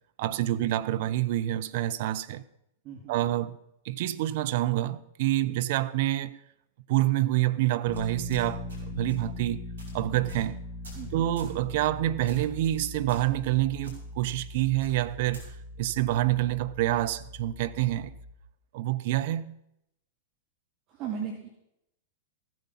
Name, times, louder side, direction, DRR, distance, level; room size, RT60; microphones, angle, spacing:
voice 1, 0.2-2.4 3.1-3.6 3.8-6.4 6.9-9.6 9.9-10.6 11.1-15.4 15.8-18.1 18.7-19.6, right 14 dB, 55° right, 0.7 m, -27 dB
voice 2, 2.8-3.2 10.9-11.2 20.9-21.5, right 7 dB, 40° right, 2.1 m, -37 dB
sound 1, 7.9-18.3, left 1 dB, 30° left, 2.5 m, -41 dB
sound 2, 7.9-8.8 9.1-9.3 9.8-9.9 10.3-10.5 10.8-11.1 11.4-11.6 12.3-12.5 13.1-13.5 13.8-13.9 14.8-15.5, left 1 dB, 80° right, 5.2 m, -46 dB
15.0 x 9.4 x 5.7 m
hypercardioid pair, 105°, 0 cm